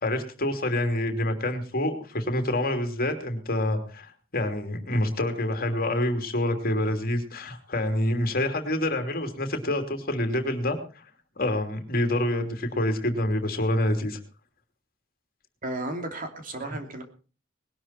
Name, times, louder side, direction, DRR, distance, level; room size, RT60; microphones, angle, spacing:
voice 1, 0.0-11.0 11.4-14.2, left 1 dB, 50° left, 6 dB, 3.0 m, -27 dB
voice 2, 15.6-17.0, right 1 dB, 45° right, 5 dB, 3.0 m, -33 dB
20.0 x 12.5 x 4.3 m, 0.37 s
head